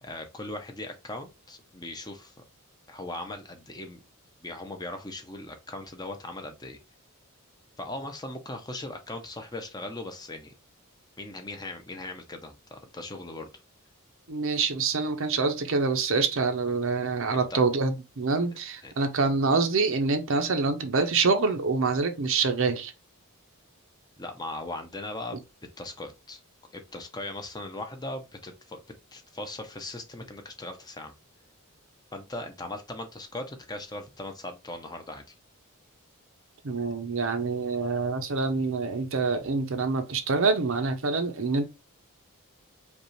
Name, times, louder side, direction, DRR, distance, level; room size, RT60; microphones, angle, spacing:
voice 1, 0.0-2.3 2.9-4.0 4.4-6.8 7.8-10.5 11.2-13.5 17.3-17.7 18.8-18.9 24.2-25.4 25.8-26.4 26.7-28.8 29.1-31.1 32.1-35.3, left 2 dB, 20° left, 0.7 m, -39 dB
voice 2, 14.3-22.9 36.6-41.7, right 4 dB, 60° right, 0.7 m, -26 dB
5.2 x 2.4 x 3.1 m
head